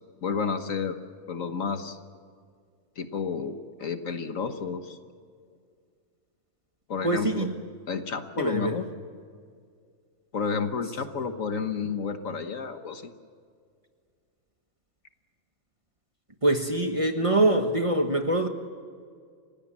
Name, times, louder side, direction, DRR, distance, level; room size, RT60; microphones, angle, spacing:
voice 1, 0.2-1.0 1.3-2.0 3.0-5.0 6.9-7.5 7.9-8.8 10.3-13.1, left 5 dB, 65° left, 8 dB, 1.7 m, -31 dB
voice 2, 7.0-7.5 8.4-8.7 16.4-18.5, right 2 dB, 25° right, 5 dB, 1.3 m, -24 dB
29.5 x 17.0 x 7.5 m, 2.1 s
omnidirectional pair, 1.5 m